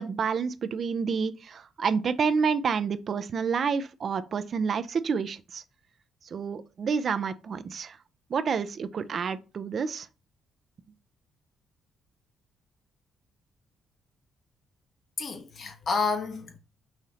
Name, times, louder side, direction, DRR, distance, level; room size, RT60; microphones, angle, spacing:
voice 1, 0.0-5.6 6.3-8.0 8.3-10.1, right 6 dB, 55° right, 0.4 m, -29 dB
voice 2, 15.2-16.6, left 4 dB, 55° left, 1.0 m, -30 dB
5.6 x 2.7 x 3.1 m
supercardioid pair, 65°, 0 cm